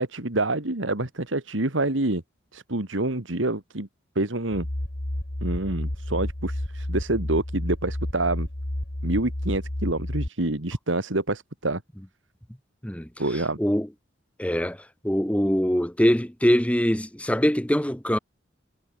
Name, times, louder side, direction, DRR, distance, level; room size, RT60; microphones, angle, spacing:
voice 1, 0.0-2.2 2.5-3.9 4.2-4.7 5.4-8.5 9.0-11.8 13.2-13.6, right 2 dB, 90° right, 2.5 m, -27 dB
sound 1, 4.5-10.3, left 1 dB, 50° left, 2.0 m, -30 dB
voice 2, 14.4-14.8 15.0-18.2, equal, 5° left, 1.2 m, -23 dB
head